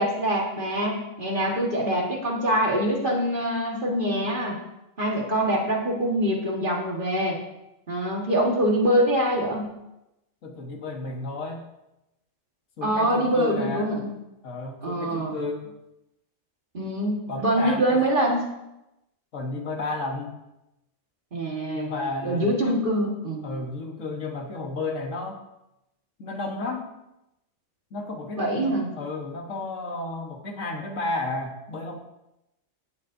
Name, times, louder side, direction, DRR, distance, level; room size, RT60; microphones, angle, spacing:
voice 1, 0.0-4.6 5.0-7.4 7.9-9.7 12.8-14.1 14.8-15.4 16.7-18.5 21.3-21.9 22.2-23.5 28.4-28.9, right 1 dB, 40° right, -1 dB, 1.9 m, -24 dB
voice 2, 10.4-11.7 12.8-13.9 14.4-15.7 17.3-18.0 19.3-20.4 21.7-22.8 23.4-25.4 26.2-26.9 27.9-32.0, left 2 dB, 70° left, 2 dB, 1.7 m, -32 dB
18.0 x 7.3 x 2.7 m, 0.91 s
omnidirectional pair, 1.4 m